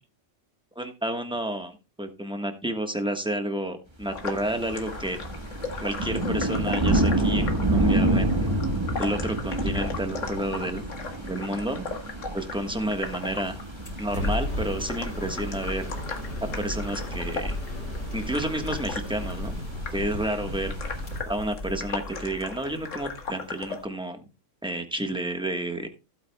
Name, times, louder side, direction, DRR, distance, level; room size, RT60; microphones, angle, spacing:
voice 1, 0.7-5.2 5.8-8.4 9.0-10.8 11.2-11.9 12.3-13.6 14.0-15.9 16.6-17.6 18.1-19.7 19.9-20.7 21.3-24.2 24.6-25.9, right 1 dB, 5° right, 6 dB, 1.2 m, -30 dB
sound 1, 4.0-21.2, right 1 dB, 20° right, 1.5 m, -30 dB
sound 2, 4.1-23.8, left 4 dB, 85° left, 1.9 m, -38 dB
sound 3, 13.8-23.8, left 1 dB, 65° left, 3.8 m, -34 dB
15.5 x 8.6 x 2.3 m, 0.28 s
omnidirectional pair, 1.3 m